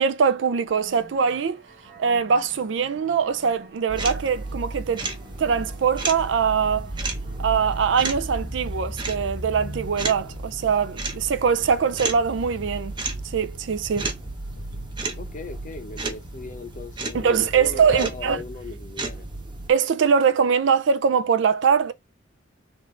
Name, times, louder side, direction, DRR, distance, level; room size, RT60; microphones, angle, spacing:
voice 1, 0.0-1.6 2.0-5.1 5.4-6.9 7.4-12.9 13.2-14.1 17.1-18.4 19.7-21.9, right 6 dB, 70° right, 0.4 m, -22 dB
sound 1, 0.7-9.4, right 2 dB, 50° right, 1.1 m, -50 dB
sound 2, 3.9-19.7, right 2 dB, 25° right, 0.7 m, -33 dB
sound 3, 6.4-18.5, left 1 dB, 85° left, 1.0 m, -49 dB
voice 2, 15.2-19.3, left 3 dB, 40° left, 0.7 m, -38 dB
3.6 x 2.5 x 4.2 m
head